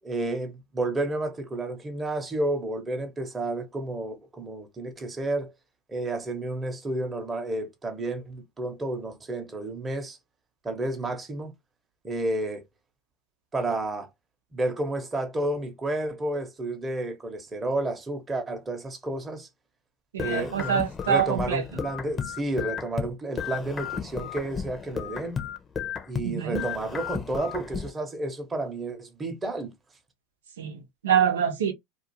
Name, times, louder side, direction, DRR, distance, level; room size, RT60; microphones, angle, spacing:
voice 1, 0.0-5.5 5.9-10.2 10.6-11.5 12.0-12.6 13.5-14.1 14.5-19.5 20.2-20.8 21.1-25.4 26.1-29.7, right 2 dB, 20° right, 0.9 m, -31 dB
voice 2, 20.1-21.6 26.2-26.6 30.6-31.7, right 8 dB, 90° right, 0.8 m, -25 dB
sound 1, 20.2-23.1 23.4-26.3 26.6-27.9, left 7 dB, 25° left, 0.7 m, -33 dB
2.5 x 2.4 x 2.9 m
hypercardioid pair, 100°, 0 cm